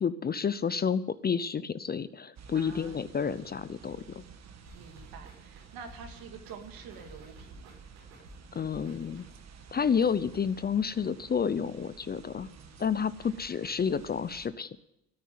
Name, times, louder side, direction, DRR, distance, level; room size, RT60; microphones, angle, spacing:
voice 1, 0.0-4.2 8.5-9.3 9.7-12.5 12.8-14.8, left 6 dB, 25° left, 15 dB, 0.6 m, -30 dB
sound 1, 2.4-14.5, right 6 dB, 45° right, 1.6 m, -52 dB
voice 2, 2.5-3.1 4.7-7.8 12.4-12.9, right 6 dB, 65° right, 5 dB, 2.6 m, -48 dB
sound 2, 4.7-9.6, right 2 dB, 85° right, 5.0 m, -53 dB
13.5 x 9.2 x 9.3 m, 0.86 s
supercardioid pair, 75°, 38 cm